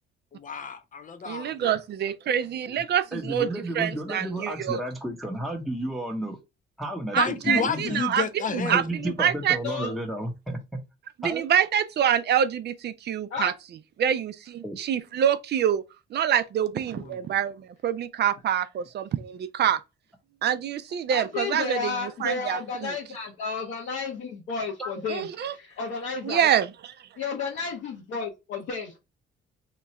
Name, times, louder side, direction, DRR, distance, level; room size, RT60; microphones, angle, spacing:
voice 1, 0.3-1.7 7.2-8.8 16.9-17.2, left 6 dB, 40° left, 0.6 m, -30 dB
voice 2, 1.3-3.5 3.7-4.8 7.1-8.2 8.7-9.6 9.8-9.9 11.2-13.5 14.0-15.8 16.1-19.8 20.4-22.9 25.1-25.5 26.2-26.7, right 9 dB, 55° right, 0.5 m, -26 dB
voice 3, 3.1-6.4 6.8-8.0 8.6-10.8 11.2-11.4 14.6-14.8 24.8-25.0, right 1 dB, ahead, 0.8 m, -32 dB
voice 4, 21.1-26.5 27.2-29.0, left 4 dB, 75° left, 1.0 m, -32 dB
2.9 x 2.3 x 4.1 m
cardioid pair, 90°, 20 cm